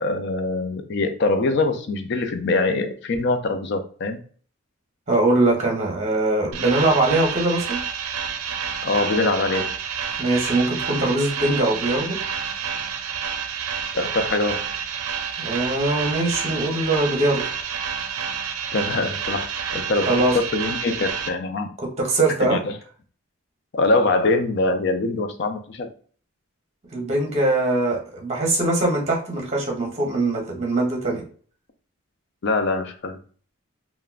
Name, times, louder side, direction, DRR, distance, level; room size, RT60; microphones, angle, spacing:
voice 1, 0.0-4.2 8.8-9.7 13.9-14.7 18.7-21.7 22.4-22.7 23.7-25.9 32.4-33.2, left 2 dB, 50° left, 7 dB, 0.4 m, -23 dB
voice 2, 5.1-7.8 10.2-12.2 15.4-17.4 20.1-20.3 21.8-22.6 26.9-31.2, right 2 dB, 30° right, 0 dB, 0.8 m, -22 dB
sound 1, 6.5-21.3, right 7 dB, 85° right, 0.5 m, -29 dB
3.5 x 2.1 x 2.4 m, 0.44 s
head